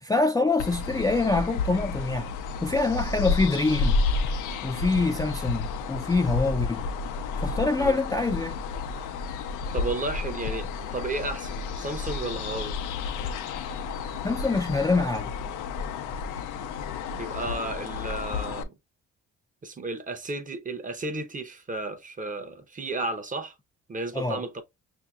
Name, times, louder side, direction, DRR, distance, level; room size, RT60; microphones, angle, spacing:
voice 1, 0.0-2.3 2.6-4.0 4.6-6.8 7.4-8.6 14.2-15.3 24.1-24.4, left 3 dB, 10° left, 0.4 m, -25 dB
sound 1, 0.6-18.6, left 4 dB, 85° left, 0.5 m, -31 dB
voice 2, 9.7-12.8 17.1-18.7 19.6-23.6 23.9-24.6, right 2 dB, 25° right, 0.7 m, -33 dB
5.7 x 2.7 x 2.3 m
cardioid pair, 90°, 30 cm